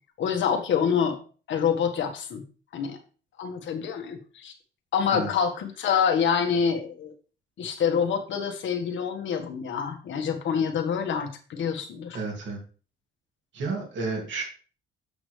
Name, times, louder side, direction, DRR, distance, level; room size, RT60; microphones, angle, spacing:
voice 1, 0.2-1.2 1.5-2.4 2.7-3.0 3.4-4.5 4.9-7.1 7.6-12.2, left 7 dB, 70° left, 5 dB, 1.5 m, -26 dB
voice 2, 12.1-12.6 13.5-14.4, right 4 dB, 70° right, 1 dB, 2.5 m, -31 dB
7.8 x 6.2 x 3.3 m, 0.38 s
cardioid pair, 90°, 20 cm